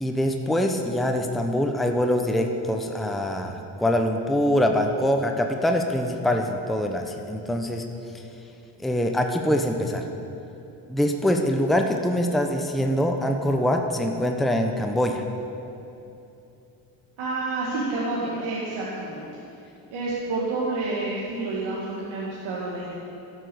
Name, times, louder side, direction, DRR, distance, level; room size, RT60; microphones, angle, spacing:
voice 1, 0.0-7.8 8.8-10.0 10.9-15.2, left 1 dB, ahead, 4 dB, 0.9 m, -24 dB
voice 2, 17.2-19.2 19.9-22.9, right 2 dB, 70° right, -6 dB, 1.8 m, -29 dB
12.0 x 6.2 x 7.0 m, 2.8 s
supercardioid pair, 60°, 49 cm